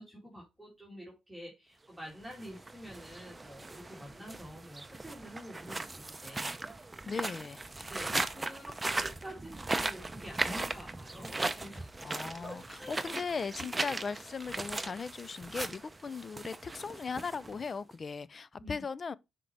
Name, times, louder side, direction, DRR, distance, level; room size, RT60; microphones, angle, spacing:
voice 1, 0.0-7.2 7.7-11.9 12.4-13.0 13.8-13.9 18.6-18.7, equal, ahead, 2.3 m, -48 dB
sound 1, 2.2-17.9, right 2 dB, 20° right, 0.6 m, -38 dB
voice 2, 7.1-7.7 12.0-19.1, left 5 dB, 40° left, 0.4 m, -38 dB
6.3 x 4.5 x 4.5 m
cardioid pair, 90°, 0 cm